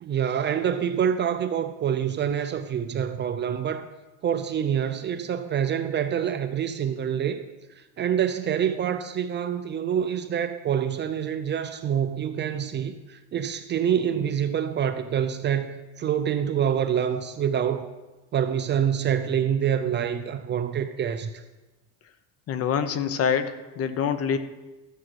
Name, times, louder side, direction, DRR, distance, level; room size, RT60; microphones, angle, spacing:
voice 1, 0.0-3.9 4.2-7.4 7.8-17.9 18.3-21.4, right 8 dB, 30° right, 0.5 m, -26 dB
voice 2, 22.5-24.4, left 7 dB, 40° left, 0.8 m, -25 dB
13.0 x 7.3 x 6.3 m
cardioid pair, 150°, 38 cm